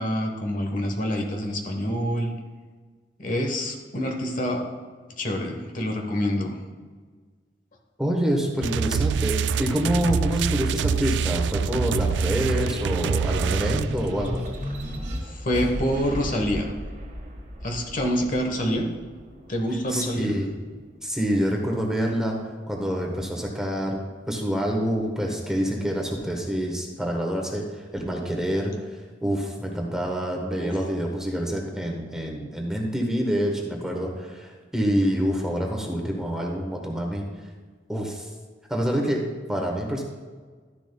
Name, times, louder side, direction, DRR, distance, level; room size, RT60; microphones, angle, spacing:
voice 1, 0.0-2.3 3.2-4.6 5.2-6.5 15.4-16.6 17.6-18.9 19.5-20.3 30.6-30.8, equal, 50° left, 2 dB, 1.1 m, -26 dB
voice 2, 8.0-14.4 19.9-20.5 21.0-22.4 22.7-24.0 24.3-37.2 37.9-38.3 38.7-39.2 39.5-40.0, equal, 5° right, 0 dB, 1.1 m, -27 dB
sound 1, 8.6-14.2, right 6 dB, 75° right, 0.3 m, -25 dB
sound 2, 10.5-20.7 21.3-22.4, equal, 45° right, 1.5 m, -35 dB
12.5 x 10.0 x 2.2 m, 1.5 s
head